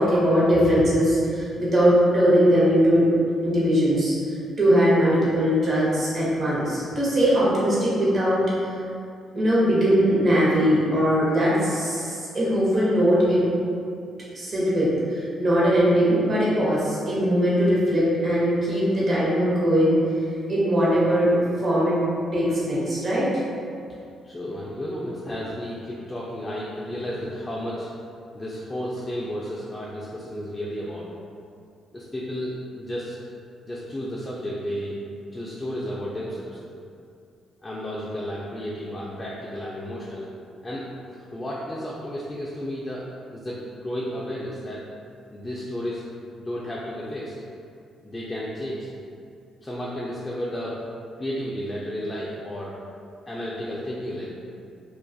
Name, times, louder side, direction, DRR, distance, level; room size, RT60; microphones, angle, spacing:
voice 1, 0.0-3.1 3.4-4.1 4.6-8.7 9.3-13.4 14.3-20.0 20.5-21.3 21.6-22.0 22.3-23.3, equal, 40° right, -7 dB, 0.8 m, -20 dB
voice 2, 24.2-27.9 28.3-31.1 31.9-33.2 33.6-35.0 35.3-36.6 37.6-40.3 40.6-44.9 45.3-46.0 46.4-47.3 48.0-48.9 49.6-50.8 51.2-52.7 53.3-54.3, equal, 20° left, -6 dB, 0.3 m, -32 dB
2.3 x 2.3 x 2.5 m, 2.4 s
cardioid pair, 90°, 0 cm